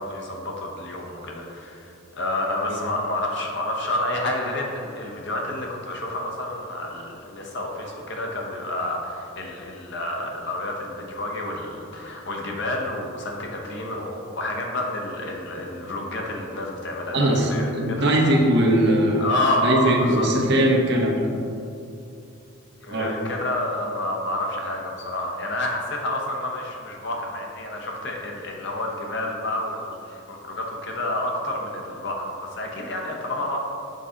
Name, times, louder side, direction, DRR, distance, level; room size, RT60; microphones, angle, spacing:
voice 1, 0.0-18.4 19.2-20.3 22.8-33.6, left 1 dB, 55° left, 0 dB, 0.9 m, -29 dB
voice 2, 17.1-19.2 19.6-21.3 22.9-23.1, right 1 dB, 55° right, -1 dB, 0.9 m, -20 dB
6.6 x 4.1 x 3.8 m, 2.7 s
head